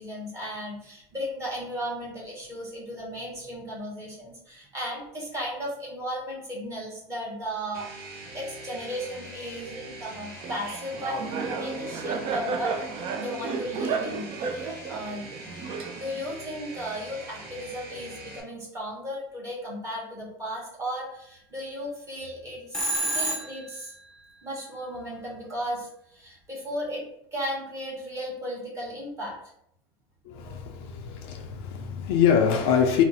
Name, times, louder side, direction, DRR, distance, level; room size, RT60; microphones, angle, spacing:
voice 1, 0.0-12.8 13.2-15.2 15.9-23.9 24.4-27.0 27.3-29.3, equal, 25° right, 1.0 m, -35 dB
sound 1, 7.7-18.4, right 2 dB, 65° right, 1.0 m, -43 dB
Laughter, 10.4-16.3, right 5 dB, 45° right, 0.4 m, -32 dB
Telephone, 22.7-23.8, right 1 dB, 5° left, 0.6 m, -28 dB
voice 2, 30.3-33.0, left 7 dB, 80° left, 0.5 m, -24 dB
2.5 x 2.0 x 3.9 m
supercardioid pair, 135°, 12 cm